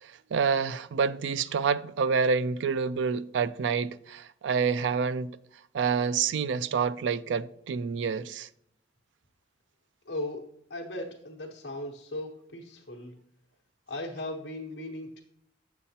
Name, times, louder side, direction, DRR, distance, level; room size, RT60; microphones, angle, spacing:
voice 1, 0.0-5.4 5.7-8.5, right 5 dB, 75° right, 0.4 m, -28 dB
voice 2, 10.0-13.2 13.9-15.2, left 1 dB, 65° left, 1.0 m, -38 dB
7.9 x 7.0 x 2.8 m
head